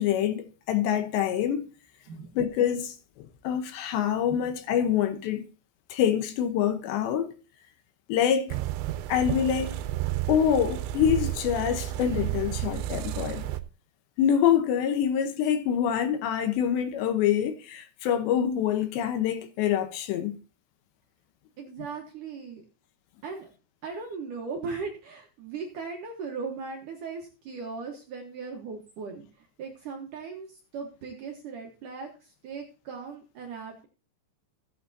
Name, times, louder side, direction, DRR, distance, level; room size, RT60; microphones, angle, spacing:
voice 1, 0.0-1.7 2.4-5.5 5.9-7.3 8.1-8.6 9.1-9.8 10.3-13.5 14.2-20.4, left 9 dB, 75° left, 3.1 m, -26 dB
sound 1, 8.5-13.6, right 14 dB, 85° right, 2.9 m, -31 dB
voice 2, 21.6-22.6 23.2-23.5 23.8-33.9, right 5 dB, 65° right, 2.2 m, -38 dB
16.0 x 8.6 x 2.8 m
omnidirectional pair, 5.3 m